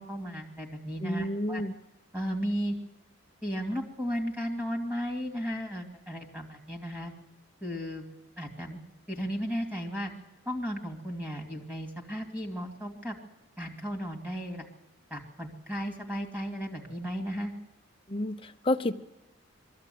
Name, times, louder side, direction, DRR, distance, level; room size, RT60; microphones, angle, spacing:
voice 1, 0.0-1.6 2.1-2.8 3.4-7.1 7.6-8.1 8.4-8.8 9.1-10.1 10.5-13.2 13.6-14.7 15.1-17.5, equal, 10° right, 2 dB, 2.6 m, -35 dB
voice 2, 1.0-1.7 18.1-18.9, left 1 dB, 25° left, 6 dB, 0.8 m, -30 dB
22.0 x 14.0 x 9.4 m, 0.95 s
head